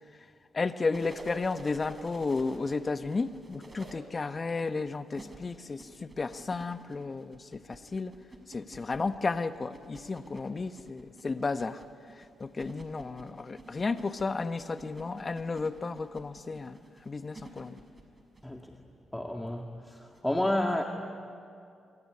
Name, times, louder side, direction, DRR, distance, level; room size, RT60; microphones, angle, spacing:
voice 1, 0.5-8.1 8.5-11.8 12.1-17.8, left 4 dB, 40° left, 1.2 m, -33 dB
sound 1, 0.9-3.9 5.1-18.5 20.1-20.2, right 2 dB, 35° right, 5.8 m, -50 dB
voice 2, 19.1-20.0 20.2-20.8, left 1 dB, 10° left, 2.2 m, -30 dB
25.5 x 24.0 x 9.8 m
hypercardioid pair, 45°, 0 cm